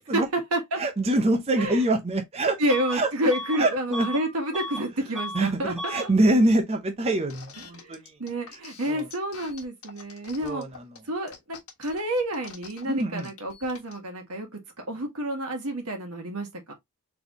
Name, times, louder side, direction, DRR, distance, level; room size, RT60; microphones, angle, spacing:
voice 1, 0.1-0.8 1.6-1.8 2.6-6.1 7.6-10.7 11.1-14.6 14.9-16.7, right 1 dB, 85° right, 1.6 m, -29 dB
voice 2, 0.8-2.6 2.9-3.1 3.6-4.1 5.3-8.1 8.9-9.0 10.4-10.7 12.9-13.3, right 1 dB, 30° right, 0.6 m, -24 dB
Bus / Alarm, 2.7-3.0 3.3-4.9 5.1-5.5 5.8-6.1, equal, ahead, 0.9 m, -35 dB
sound 1, 7.3-14.0, left 6 dB, 80° left, 1.5 m, -46 dB
4.1 x 3.4 x 2.9 m
head